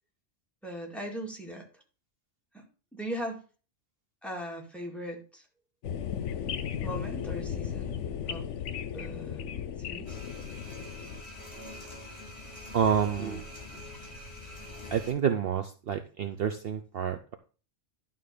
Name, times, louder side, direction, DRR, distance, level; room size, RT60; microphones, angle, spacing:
voice 1, 0.6-1.8 2.5-2.6 2.9-3.4 4.2-5.5 6.8-8.0 8.3-8.5 8.9-10.2 13.2-13.4 13.7-13.8, right 1 dB, ahead, 1 dB, 1.9 m, -39 dB
sound 1, 5.8-11.2, left 8 dB, 80° left, 1.0 m, -35 dB
sound 2, 10.1-15.1, left 2 dB, 40° left, 2.8 m, -44 dB
voice 2, 12.7-13.4 14.9-17.4, right 8 dB, 60° right, 8 dB, 0.8 m, -28 dB
11.5 x 3.8 x 6.7 m, 0.36 s
omnidirectional pair, 1.2 m